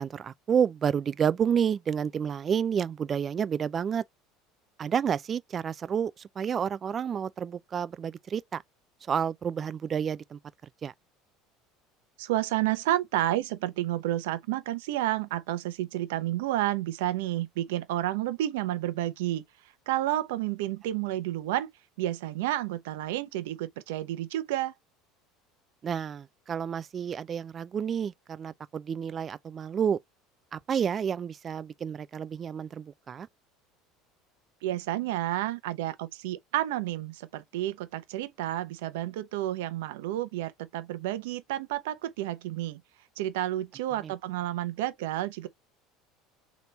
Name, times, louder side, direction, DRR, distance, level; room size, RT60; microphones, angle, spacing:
voice 1, 0.0-4.0 4.8-8.6 9.1-10.4 10.8-10.9 25.8-30.0 30.5-33.3 44.0-44.1, right 7 dB, 30° right, 0.4 m, -30 dB
voice 2, 12.2-19.4 19.9-21.7 22.0-24.7 34.6-42.8 43.2-45.5, right 14 dB, 85° right, 0.7 m, -30 dB
3.4 x 3.0 x 3.9 m
supercardioid pair, 120°, 0 cm